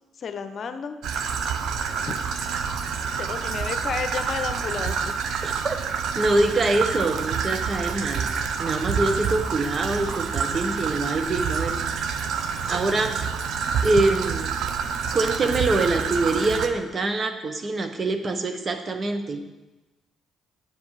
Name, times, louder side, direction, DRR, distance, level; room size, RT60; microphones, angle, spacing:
voice 1, 0.2-1.0 2.1-2.2 3.2-5.2, left 6 dB, 55° left, 9 dB, 0.8 m, -31 dB
Traffic noise roadway noise / Trickle dribble, 1.0-16.7, right 6 dB, 70° right, 0.8 m, -28 dB
voice 2, 5.4-5.8 6.1-8.3 8.6-11.8 12.6-13.2 13.8-14.5 15.1-19.4, right 2 dB, 40° right, 7 dB, 1.2 m, -24 dB
8.7 x 7.2 x 4.9 m, 1.1 s
hypercardioid pair, 55°, 0 cm